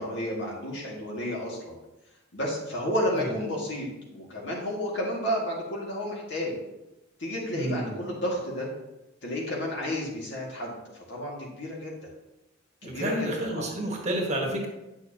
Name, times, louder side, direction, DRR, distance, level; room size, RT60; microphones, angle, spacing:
voice 1, 0.0-1.7 2.3-6.6 7.2-8.7 9.2-12.1 12.8-13.7, left 1 dB, 60° left, -3 dB, 2.0 m, -31 dB
voice 2, 7.5-7.9 12.8-14.7, right 1 dB, 35° right, 0 dB, 1.4 m, -30 dB
8.9 x 6.2 x 2.8 m, 0.94 s
head